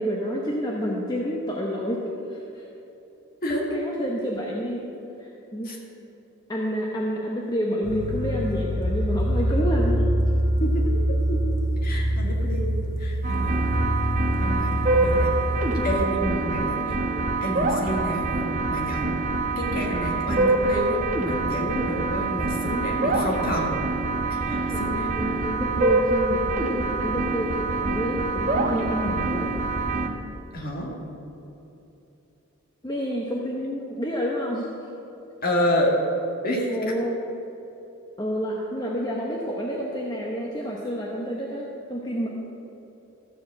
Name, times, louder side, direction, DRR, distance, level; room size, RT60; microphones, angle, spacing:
voice 1, 0.0-2.0 2.3-2.7 3.5-5.7 6.5-10.1 22.7-23.2 24.5-29.5 32.8-34.7 36.7-37.2 38.2-42.3, equal, 20° left, -3 dB, 0.8 m, -29 dB
voice 2, 3.4-3.8 5.6-5.8 10.6-10.9 11.3-11.5 11.8-13.6 14.4-15.3 15.8-17.0 17.4-19.1 19.6-23.8 24.3-25.1 30.5-31.0 35.4-36.0 36.4-36.8, equal, 45° left, -2 dB, 1.9 m, -29 dB
sound 1, 7.8-15.9, equal, 75° left, 1.6 m, -24 dB
sound 2, 13.2-30.1, right 2 dB, 35° right, 0.9 m, -25 dB
13.5 x 5.0 x 7.6 m, 3.0 s
head